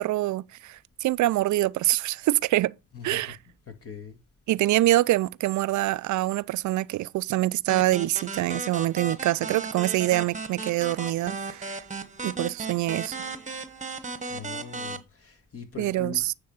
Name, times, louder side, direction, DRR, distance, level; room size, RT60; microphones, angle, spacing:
voice 1, 0.0-2.7 3.0-3.4 4.5-11.8 12.2-13.1 15.8-16.3, right 16 dB, 55° right, 0.4 m, -25 dB
voice 2, 2.9-3.3 3.7-4.2 14.3-16.3, left 6 dB, 40° left, 1.9 m, -41 dB
sound 1, 7.7-15.0, right 3 dB, 20° right, 1.1 m, -36 dB
9.5 x 3.5 x 5.4 m
supercardioid pair, 60°, 35 cm